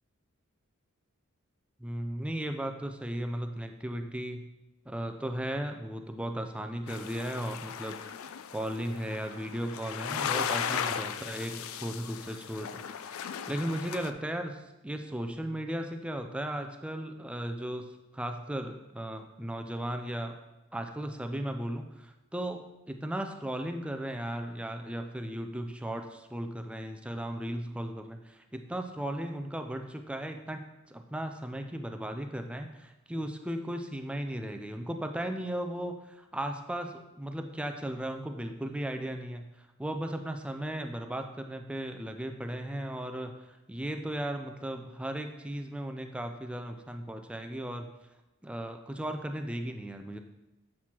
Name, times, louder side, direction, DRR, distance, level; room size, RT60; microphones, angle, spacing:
voice 1, 1.8-4.4 4.9-8.0 8.5-13.2 13.5-17.9 18.1-20.4 20.7-30.6 30.9-47.9 48.4-50.2, right 1 dB, 5° right, 5 dB, 0.4 m, -36 dB
sound 1, 6.9-14.1, left 8 dB, 70° left, 0.4 m, -36 dB
7.4 x 6.2 x 2.9 m, 0.98 s
head